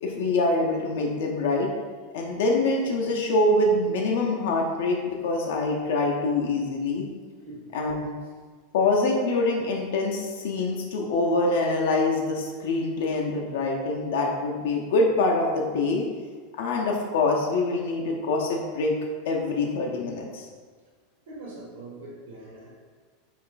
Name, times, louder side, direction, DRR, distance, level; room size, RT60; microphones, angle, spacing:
voice 1, 0.0-1.7 2.1-7.1 7.7-8.1 8.7-16.1 16.6-19.0 19.3-20.4, left 2 dB, 70° left, 0 dB, 0.5 m, -25 dB
voice 2, 21.3-22.7, right 2 dB, 85° right, -4 dB, 0.9 m, -42 dB
3.3 x 2.4 x 3.7 m, 1.5 s
supercardioid pair, 175°, 0 cm